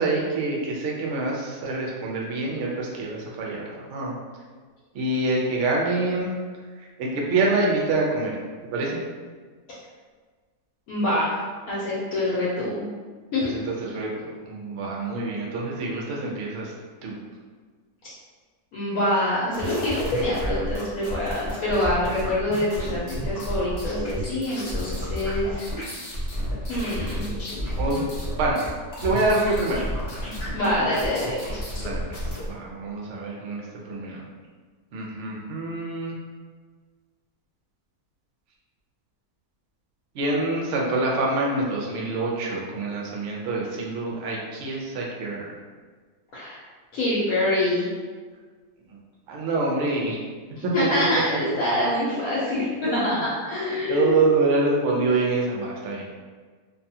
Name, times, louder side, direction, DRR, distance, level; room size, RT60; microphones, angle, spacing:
voice 1, 0.0-4.2 4.9-6.3 6.8-8.4 8.7-9.0 13.4-16.7 17.0-17.2 27.8-28.0 28.4-28.6 29.0-29.8 30.5-30.6 31.8-34.2 34.9-36.1 40.1-45.5 48.9-49.0 49.3-50.2 50.6-50.7 52.8-53.1 53.7-56.1, right 2 dB, 65° right, -2 dB, 0.7 m, -26 dB
voice 2, 10.9-11.3 11.7-12.9 13.3-13.5 18.7-25.7 26.7-27.3 30.5-31.5 46.3-46.6 46.9-47.9 50.6-54.3, left 1 dB, 70° left, -8 dB, 1.0 m, -25 dB
sound 1, 19.5-32.5, equal, 50° left, 0.5 m, -31 dB
2.6 x 2.2 x 2.7 m, 1.5 s
omnidirectional pair, 1.7 m